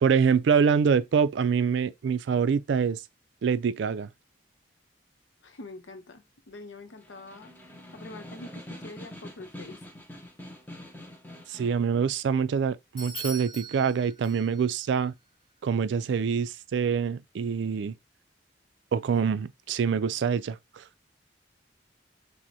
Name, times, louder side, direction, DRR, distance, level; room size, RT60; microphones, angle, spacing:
voice 1, 0.0-3.0 3.4-4.1 11.5-15.1 15.6-18.0 18.9-20.8, right 6 dB, 70° right, 0.3 m, -25 dB
voice 2, 5.4-7.5 7.9-9.8, left 2 dB, 80° left, 0.7 m, -45 dB
Snare drum, 6.9-11.9, left 1 dB, 10° left, 0.6 m, -45 dB
Bell / Doorbell, 13.0-14.8, right 1 dB, 35° left, 2.6 m, -41 dB
5.9 x 2.1 x 2.7 m
head